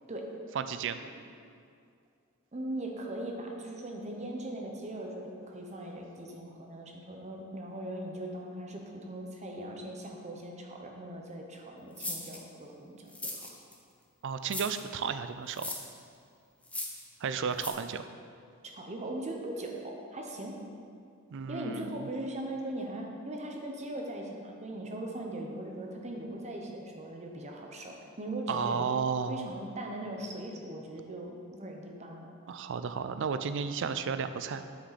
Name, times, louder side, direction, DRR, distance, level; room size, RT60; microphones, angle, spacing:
voice 1, 0.5-1.0 14.2-15.7 17.2-18.1 21.3-22.1 28.5-29.5 32.5-34.6, right 6 dB, 60° right, 10 dB, 0.4 m, -33 dB
voice 2, 2.5-13.5 18.7-20.6 21.5-28.8 29.3-32.3, right 1 dB, 35° right, 1 dB, 0.9 m, -40 dB
sound 1, 12.0-12.4 13.1-13.8 14.5-14.8 15.5-15.9 16.6-17.0 17.6-17.7, left 2 dB, 5° left, 0.7 m, -38 dB
7.9 x 6.4 x 4.2 m, 2.3 s
head